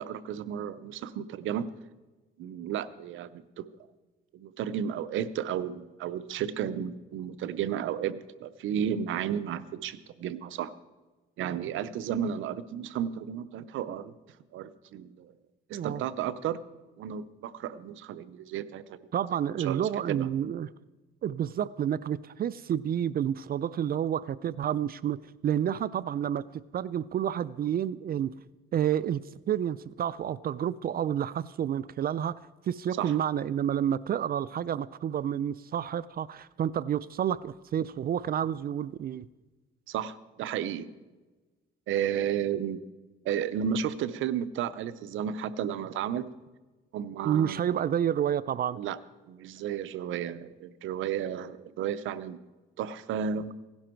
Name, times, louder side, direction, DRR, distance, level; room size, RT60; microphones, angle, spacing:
voice 1, 0.0-1.7 2.4-3.7 4.3-10.7 11.4-14.1 14.5-15.3 15.7-16.6 17.0-19.0 19.6-19.8 20.1-20.3 33.0-33.2 39.9-40.9 41.9-42.8 43.2-46.2 46.9-47.6 48.8-49.0 49.3-52.4 52.8-53.5, right 9 dB, 80° right, 15 dB, 0.7 m, -33 dB
voice 2, 15.7-16.0 19.1-20.7 21.2-28.3 28.7-32.3 32.7-39.3 47.2-48.8, right 9 dB, 50° right, 19 dB, 0.4 m, -29 dB
16.5 x 11.5 x 4.5 m, 1.2 s
cardioid pair, 90°, 20 cm